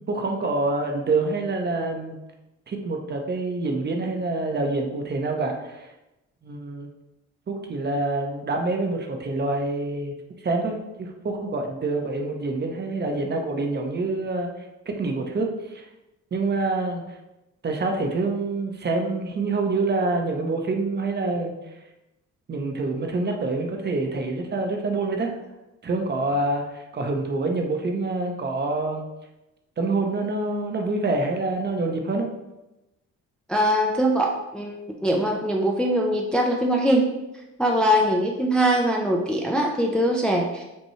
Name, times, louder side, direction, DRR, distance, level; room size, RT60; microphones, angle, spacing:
voice 1, 0.1-2.2 2.7-5.9 6.4-6.9 7.5-10.1 10.4-14.5 14.9-15.9 16.3-17.2 17.6-21.6 22.5-25.3 25.8-29.1 29.8-32.3, right 3 dB, 35° right, 3 dB, 0.7 m, -26 dB
voice 2, 33.5-37.0 37.6-40.6, equal, 5° left, 0 dB, 0.4 m, -22 dB
5.4 x 2.2 x 3.1 m, 0.96 s
cardioid pair, 90°, 30 cm